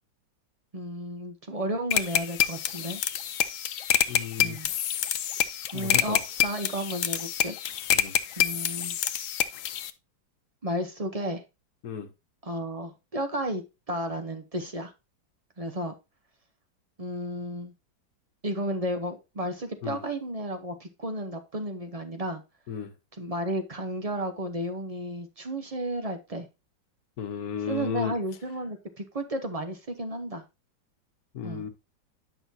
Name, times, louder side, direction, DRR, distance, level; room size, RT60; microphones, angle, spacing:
voice 1, 0.7-3.0 4.4-4.7 5.7-7.6 8.4-9.0 10.6-11.4 12.4-14.9 15.6-16.0 17.0-17.7 18.4-22.4 23.1-26.5 27.7-30.4 31.4-31.7, right 1 dB, 55° right, 0.4 m, -33 dB
sound 1, 1.9-9.9, left 11 dB, 80° left, 0.7 m, -27 dB
voice 2, 4.1-4.6 5.7-6.2 7.9-8.1 11.8-12.1 19.8-20.0 22.7-22.9 27.2-28.1 31.3-31.7, left 7 dB, 55° left, 1.4 m, -34 dB
9.8 x 6.1 x 2.7 m
omnidirectional pair, 2.1 m